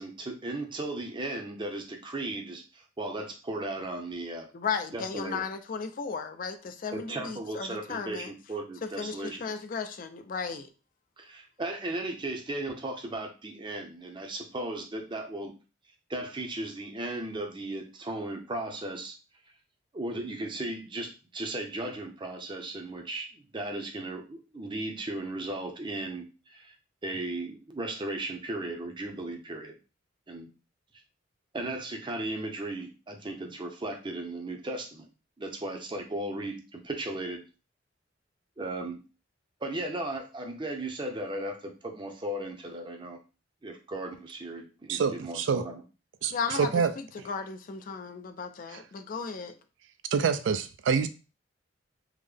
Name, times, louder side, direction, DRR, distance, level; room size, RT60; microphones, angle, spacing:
voice 1, 0.0-4.5 4.9-5.4 6.9-9.5 11.2-15.6 16.1-19.2 19.9-26.7 27.0-29.8 30.3-30.5 31.5-35.1 35.4-37.4 38.6-39.0 39.6-43.2 43.6-45.8, right 2 dB, 25° right, 2 dB, 0.6 m, -36 dB
voice 2, 4.5-8.3 8.8-10.7 46.3-46.7 47.3-49.6, left 5 dB, 45° left, 8 dB, 0.4 m, -35 dB
voice 3, 44.9-45.7 46.2-47.3 48.7-48.8 50.1-51.1, right 6 dB, 70° right, 10 dB, 0.3 m, -27 dB
3.6 x 2.1 x 3.3 m, 0.32 s
head